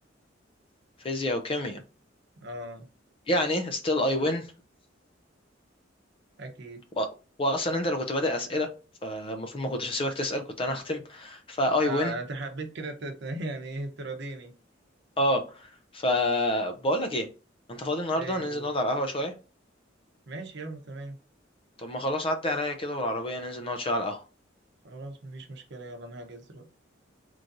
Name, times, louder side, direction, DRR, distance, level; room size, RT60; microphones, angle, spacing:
voice 1, 1.0-1.8 3.3-4.5 7.0-7.1 7.4-8.7 9.0-12.1 15.2-17.3 17.7-19.3 21.8-24.2, left 1 dB, 30° left, 0.6 m, -28 dB
voice 2, 2.4-2.9 6.4-6.8 11.8-14.5 18.1-18.7 20.3-21.2 24.8-26.7, right 2 dB, 65° right, 0.8 m, -38 dB
3.8 x 3.1 x 2.6 m
head